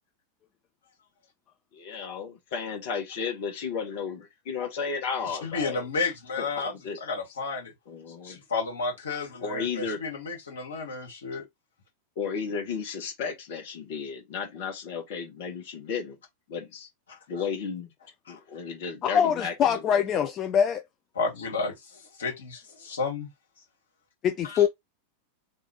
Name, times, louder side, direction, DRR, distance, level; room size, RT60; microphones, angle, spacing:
voice 1, 1.7-5.9 6.4-7.0 7.9-8.4 9.4-10.0 12.2-16.2 16.5-16.9 17.3-17.9 18.3-20.3, left 6 dB, 50° left, 1.8 m, -34 dB
voice 2, 5.3-6.7 7.0-7.7 8.2-11.4 17.1-17.2 18.3-18.4 21.2-21.7 22.2-23.3 24.4-24.6, left 4 dB, 70° left, 2.1 m, -32 dB
voice 3, 19.0-20.8 24.2-24.7, left 8 dB, 30° left, 0.5 m, -23 dB
3.5 x 3.4 x 3.0 m
figure-of-eight pair, 90°, 0 cm